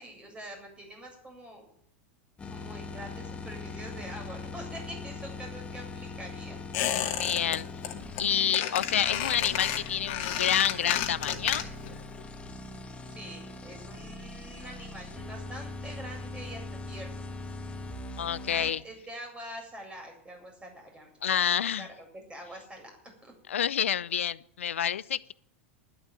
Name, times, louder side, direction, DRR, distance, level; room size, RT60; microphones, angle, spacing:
voice 1, 0.0-1.6 2.5-6.6 13.1-17.2 18.5-22.9 23.2-23.3, right 1 dB, 15° right, 2 dB, 7.5 m, -45 dB
sound 1, 2.4-18.7, left 3 dB, 15° left, 2.0 m, -41 dB
Squeak, 6.7-7.6 7.8-8.2 8.5-11.9 12.2-12.3, left 11 dB, 55° left, 2.3 m, -31 dB
voice 2, 7.2-7.7 8.2-11.6 18.2-18.8 21.2-21.9 23.5-25.3, left 9 dB, 75° left, 19 dB, 0.6 m, -28 dB
11.5 x 11.5 x 9.3 m, 0.70 s
hypercardioid pair, 90°, 7 cm